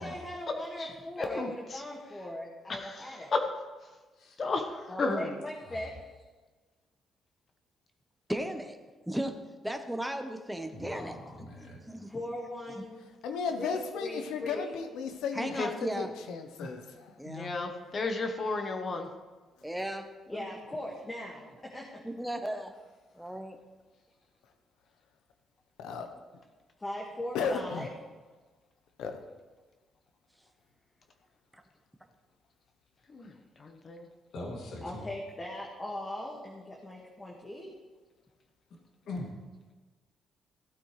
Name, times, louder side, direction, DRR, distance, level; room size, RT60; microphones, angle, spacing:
voice 1, 0.0-3.3 4.9-5.9 12.1-12.9 13.6-14.7 20.3-22.0 26.8-27.9 34.8-37.7, left 1 dB, 20° left, -3 dB, 1.8 m, -39 dB
voice 2, 1.2-1.5 2.7-3.1 4.4-5.3 15.6-15.7 17.3-19.1 33.1-33.3 33.6-34.1, left 3 dB, 45° left, 5 dB, 1.1 m, -33 dB
voice 3, 8.3-8.8 9.1-11.2 11.8-12.1 12.8-12.9 15.3-16.1 17.2-17.5 19.6-20.4 22.0-22.7 23.1-23.6 31.5-31.6, right 1 dB, 5° right, 5 dB, 0.9 m, -36 dB
voice 4, 10.7-11.8 16.6-16.8 34.3-35.0 39.0-39.3, left 1 dB, 70° left, -1 dB, 2.5 m, -41 dB
voice 5, 13.2-16.8 17.3-17.6 25.8-26.1 27.3-27.9 29.0-29.2, left 5 dB, 90° left, 6 dB, 0.9 m, -35 dB
15.5 x 8.7 x 3.2 m, 1.3 s
cardioid pair, 90°, 0 cm